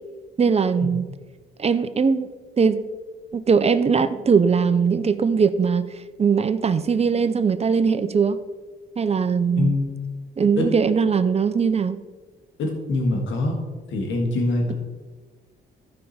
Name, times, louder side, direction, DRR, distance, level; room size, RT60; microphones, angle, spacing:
voice 1, 0.4-1.1 1.6-2.3 2.6-2.8 3.3-5.9 6.2-8.4 9.0-9.7 10.4-12.0, right 6 dB, 30° right, 12 dB, 0.6 m, -20 dB
voice 2, 9.6-10.0 10.6-10.7 12.6-13.6 13.9-14.7, left 2 dB, 75° left, 1 dB, 2.1 m, -24 dB
14.5 x 5.3 x 4.3 m, 1.3 s
cardioid pair, 90°, 20 cm